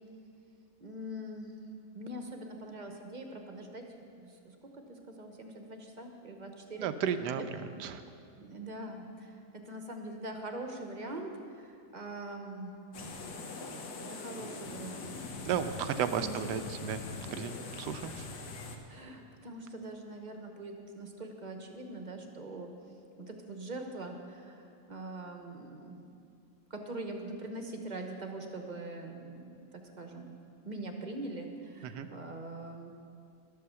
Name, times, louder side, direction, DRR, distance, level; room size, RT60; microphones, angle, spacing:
voice 1, 0.8-1.6 1.9-3.9 4.2-4.5 4.9-6.9 7.4-7.7 8.4-12.7 14.1-15.1 15.8-16.7 18.9-22.7 23.2-26.0 26.7-29.7 30.0-32.9, right 2 dB, 35° right, 3 dB, 0.9 m, -43 dB
voice 2, 6.8-7.4 7.8-8.0 15.4-17.0 17.3-18.3 31.8-32.1, right 8 dB, 85° right, 10 dB, 1.3 m, -33 dB
sound 1, 12.9-18.8, left 3 dB, 75° left, 1.6 m, -42 dB
12.0 x 8.4 x 6.9 m, 2.5 s
omnidirectional pair, 1.8 m